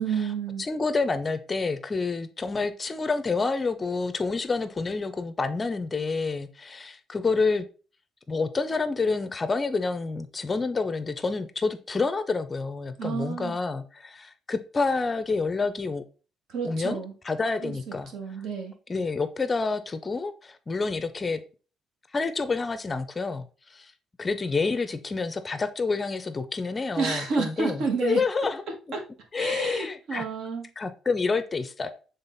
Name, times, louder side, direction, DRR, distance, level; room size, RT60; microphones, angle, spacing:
voice 1, 0.0-0.6 13.0-13.6 16.5-17.1 17.6-18.7 27.0-28.2 28.9-29.0 29.4-30.7, right 5 dB, 70° right, 3 dB, 1.8 m, -30 dB
voice 2, 0.6-7.6 8.3-16.0 16.7-18.1 18.9-21.4 22.1-23.9 24.2-28.6 29.3-30.2 30.8-31.9, left 4 dB, 20° left, 11 dB, 0.5 m, -28 dB
7.3 x 3.7 x 4.0 m, 0.36 s
cardioid pair, 160°, 0 cm